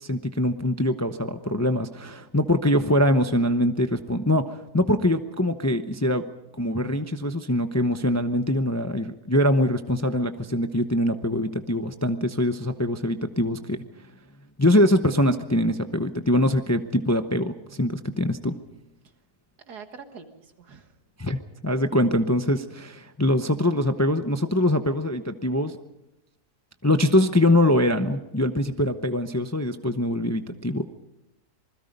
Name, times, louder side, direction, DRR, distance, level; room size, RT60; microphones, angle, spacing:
voice 1, 0.0-6.2 6.6-13.8 14.6-18.6 21.2-25.7 26.8-30.8, left 1 dB, 15° left, 8 dB, 0.6 m, -23 dB
voice 2, 19.7-21.0, right 5 dB, 85° right, 7 dB, 2.2 m, -44 dB
27.0 x 21.0 x 5.4 m, 0.94 s
omnidirectional pair, 1.7 m